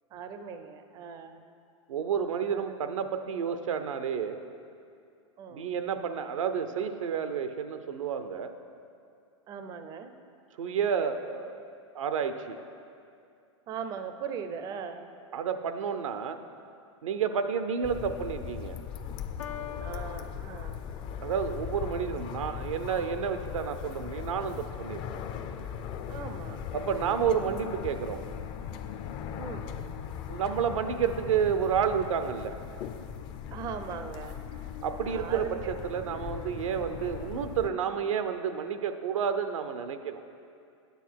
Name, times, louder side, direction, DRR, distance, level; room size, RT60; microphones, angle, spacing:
voice 1, 0.1-1.4 2.5-2.6 5.4-5.7 9.5-10.1 13.7-15.1 19.8-20.8 26.1-26.6 29.4-29.8 33.5-35.7, right 6 dB, 25° right, 8 dB, 0.5 m, -40 dB
voice 2, 1.9-4.4 5.5-8.5 10.6-11.6 11.9-12.6 15.3-16.4 17.0-18.8 21.2-25.2 26.7-28.2 30.3-32.5 34.8-40.2, right 7 dB, 85° right, 9 dB, 0.7 m, -30 dB
sound 1, 17.8-37.7, left 8 dB, 30° left, 0.4 m, -39 dB
Piano, 19.4-21.4, left 9 dB, 85° left, 0.6 m, -44 dB
9.3 x 8.1 x 4.6 m, 2.4 s
hypercardioid pair, 140°, 16 cm